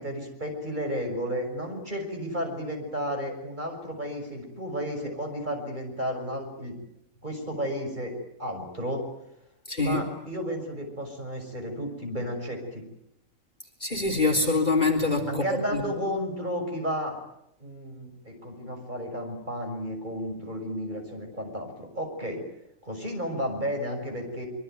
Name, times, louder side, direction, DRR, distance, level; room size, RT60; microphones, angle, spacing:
voice 1, 0.0-6.8 7.2-8.1 8.4-9.0 9.8-12.8 15.3-17.2 17.6-22.4 22.8-24.5, equal, 35° right, 4 dB, 6.4 m, -32 dB
voice 2, 9.7-10.0 13.8-15.4 15.7-15.8, left 3 dB, 35° left, 5 dB, 3.9 m, -24 dB
26.0 x 24.0 x 9.3 m, 0.82 s
omnidirectional pair, 1.4 m